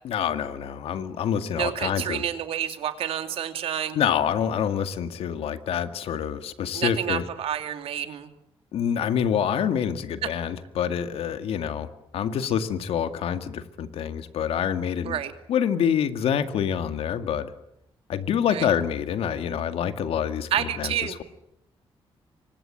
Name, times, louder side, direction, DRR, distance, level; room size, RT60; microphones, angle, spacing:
voice 1, 0.0-2.2 3.9-7.2 8.7-11.9 12.1-15.2 15.5-17.5 18.1-20.9, left 8 dB, 85° left, 10 dB, 2.1 m, -26 dB
voice 2, 1.6-4.0 6.7-8.3 10.2-10.3 15.0-15.3 18.5-18.7 20.5-21.2, right 10 dB, 80° right, 9 dB, 2.5 m, -29 dB
27.0 x 24.0 x 8.8 m, 0.80 s
wide cardioid pair, 170°, 10 cm